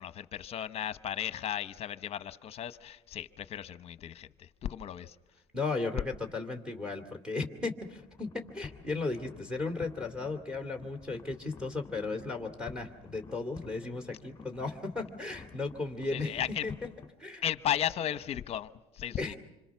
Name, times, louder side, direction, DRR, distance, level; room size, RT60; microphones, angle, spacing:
voice 1, 0.0-5.1 16.1-16.7 17.4-18.7 18.9-19.3, left 10 dB, 40° left, 13 dB, 0.9 m, -35 dB
voice 2, 5.5-16.7 17.2-17.4 19.2-19.4, left 3 dB, 5° right, 3 dB, 2.5 m, -35 dB
sound 1, 7.8-17.1, left 5 dB, 15° left, 2.5 m, -51 dB
26.5 x 26.0 x 5.9 m, 1.0 s
cardioid pair, 120°, 16 cm